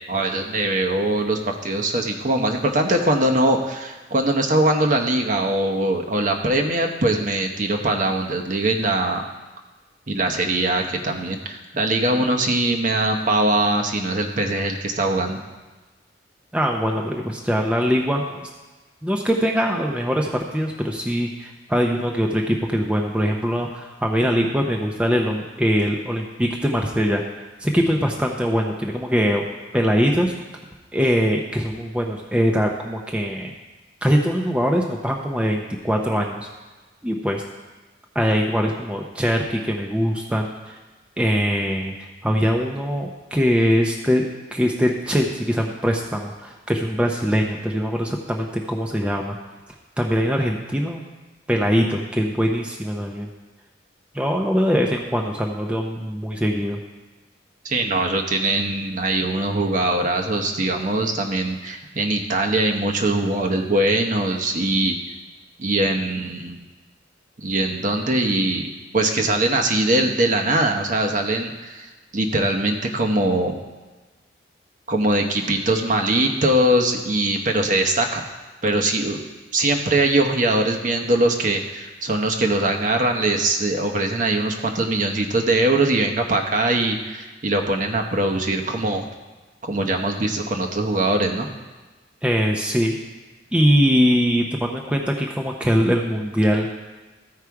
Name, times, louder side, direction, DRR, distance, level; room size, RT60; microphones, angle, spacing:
voice 1, 0.1-9.3 10.1-15.4 57.6-64.9 65.6-66.6 67.4-73.6 74.9-78.2 78.6-79.2 79.5-89.0 89.6-91.5, right 1 dB, 40° right, 3 dB, 0.8 m, -22 dB
voice 2, 16.5-18.5 19.0-27.2 27.6-29.4 29.7-30.3 30.9-33.5 34.0-36.5 37.0-37.4 38.1-40.8 41.2-44.2 44.5-49.4 50.0-51.0 51.5-53.3 54.1-56.8 92.2-93.0 93.5-96.7, equal, 5° right, 0 dB, 0.6 m, -22 dB
14.0 x 4.8 x 4.7 m, 1.2 s
head